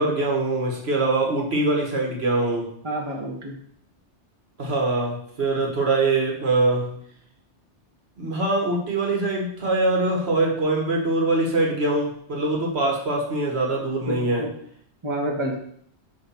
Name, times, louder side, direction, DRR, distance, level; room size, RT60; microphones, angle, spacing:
voice 1, 0.0-2.7 4.6-6.9 8.2-14.4, right 2 dB, 65° right, -1 dB, 1.6 m, -23 dB
voice 2, 2.8-3.5 14.1-14.5 15.0-15.5, right 1 dB, 25° right, 0 dB, 1.1 m, -28 dB
7.2 x 3.2 x 5.7 m, 0.66 s
omnidirectional pair, 1.2 m